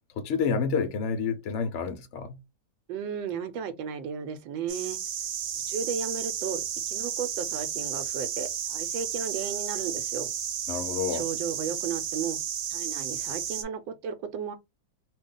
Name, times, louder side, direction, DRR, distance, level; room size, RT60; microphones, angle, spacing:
voice 1, 0.2-2.4 10.7-11.2, left 6 dB, 65° left, 0.7 m, -29 dB
voice 2, 2.9-5.0 5.7-10.3 11.1-12.4 12.7-14.5, right 7 dB, 85° right, 1.3 m, -34 dB
sound 1, 4.7-13.6, right 9 dB, 70° right, 1.1 m, -32 dB
2.8 x 2.5 x 3.6 m
omnidirectional pair, 2.0 m